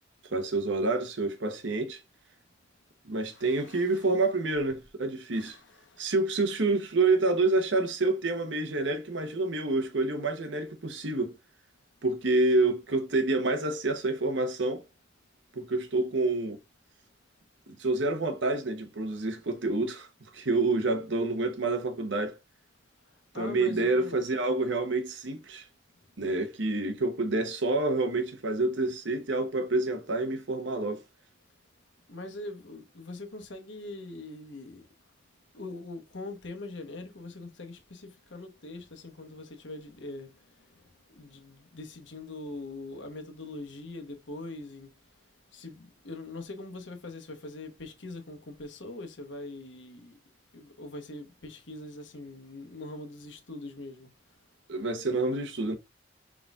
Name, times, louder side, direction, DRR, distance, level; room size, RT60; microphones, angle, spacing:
voice 1, 0.3-2.0 3.1-5.6 6.0-11.3 12.0-14.8 15.5-16.6 17.7-20.1 20.3-22.4 23.3-25.6 26.2-31.0 54.7-55.7, right 2 dB, 75° right, 1.0 m, -28 dB
voice 2, 3.3-4.2 5.3-5.9 23.3-24.3 32.1-34.9 35.5-40.3 41.2-44.9 45.5-50.1 50.5-54.1, left 2 dB, 75° left, 1.1 m, -42 dB
4.7 x 4.1 x 2.4 m
head